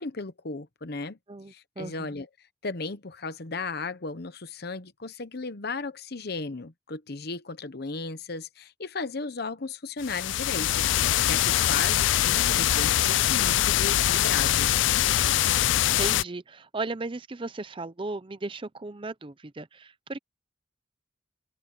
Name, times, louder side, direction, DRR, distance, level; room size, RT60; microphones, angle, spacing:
voice 1, 0.0-1.2 1.5-2.3 2.6-14.7, left 3 dB, 55° left, 1.0 m, -35 dB
voice 2, 1.3-2.1 16.0-20.2, right 3 dB, 25° right, 0.6 m, -36 dB
sound 1, 10.0-16.2, left 12 dB, 75° left, 0.4 m, -23 dB
head